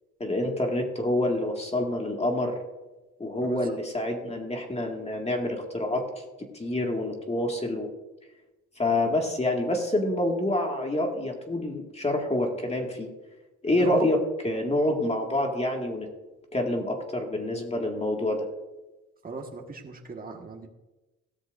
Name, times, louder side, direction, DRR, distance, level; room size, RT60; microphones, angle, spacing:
voice 1, 0.2-2.6 3.2-6.0 6.6-7.9 8.8-13.1 13.6-16.1 16.5-18.5, left 1 dB, 20° left, 1 dB, 2.1 m, -27 dB
voice 2, 13.7-14.1 19.2-20.7, right 4 dB, 30° right, 1 dB, 1.7 m, -36 dB
16.5 x 13.0 x 2.7 m, 1.1 s
cardioid pair, 90°, 30 cm